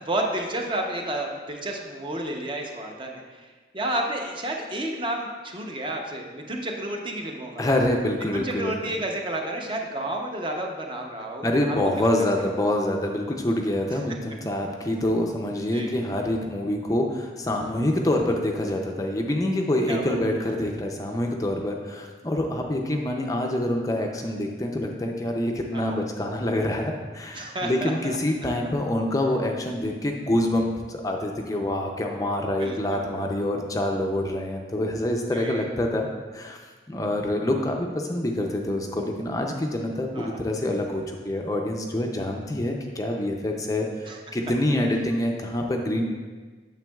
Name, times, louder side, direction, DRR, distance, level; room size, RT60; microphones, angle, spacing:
voice 1, 0.0-3.2 3.7-7.6 8.3-12.3 15.7-15.9 19.9-20.2 25.7-26.0 27.3-28.2 32.6-33.3 35.3-35.7 40.1-40.4 44.1-44.2, right 1 dB, 25° right, 1 dB, 0.7 m, -31 dB
voice 2, 7.6-8.7 11.4-36.1 36.3-36.6 36.9-46.0, left 1 dB, 20° left, 2 dB, 0.4 m, -26 dB
8.9 x 7.0 x 2.3 m, 1.4 s
head